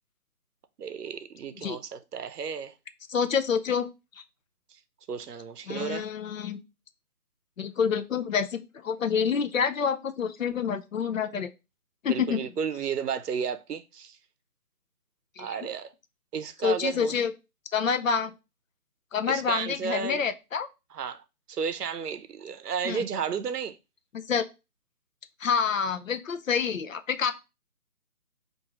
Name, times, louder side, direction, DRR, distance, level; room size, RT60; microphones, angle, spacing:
voice 1, 0.8-2.7 5.1-6.1 12.1-14.2 15.4-15.9 16.3-17.2 19.3-20.2 20.9-21.2 21.5-23.8, right 6 dB, 85° right, 0.7 m, -33 dB
voice 2, 3.1-3.9 5.7-6.6 7.6-11.5 12.0-12.4 15.4-15.6 16.6-17.3 17.7-18.3 19.1-20.7 22.8-23.0 24.3-24.4 25.4-27.3, left 6 dB, 60° left, 0.5 m, -27 dB
4.7 x 2.6 x 2.9 m
hypercardioid pair, 170°, 46 cm